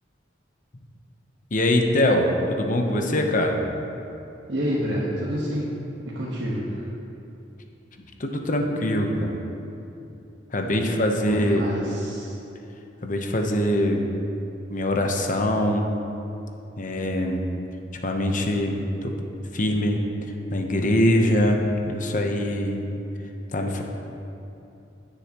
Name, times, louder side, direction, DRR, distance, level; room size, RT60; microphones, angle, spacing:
voice 1, 1.5-3.6 8.2-9.4 10.5-11.6 13.0-14.1 14.7-15.9 16.8-17.5 18.0-19.1 19.5-20.0 20.5-22.8 23.5-23.8, left 1 dB, 45° left, 3 dB, 0.9 m, -23 dB
voice 2, 4.5-6.9 11.2-12.4, equal, 75° right, -7 dB, 1.4 m, -28 dB
17.0 x 6.9 x 3.0 m, 2.8 s
head